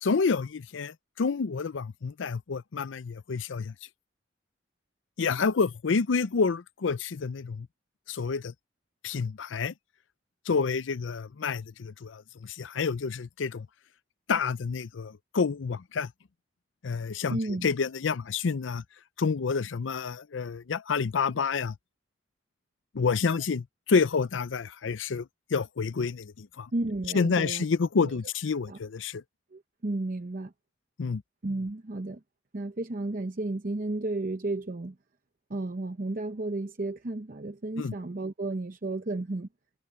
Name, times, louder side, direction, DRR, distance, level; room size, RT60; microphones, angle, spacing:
voice 1, 0.0-3.7 5.2-7.7 8.1-8.5 9.0-9.7 10.5-13.7 14.3-16.1 16.8-18.8 19.2-21.7 22.9-25.3 25.5-26.7 27.1-29.2 31.0-31.2 37.8-37.9, left 5 dB, 85° left, 0.5 m, -28 dB
voice 2, 17.3-17.7 26.7-27.6 28.0-28.2 28.7-28.8 29.5-30.5 31.4-32.2 32.5-35.0 35.5-39.5, right 2 dB, 45° right, 0.7 m, -33 dB
head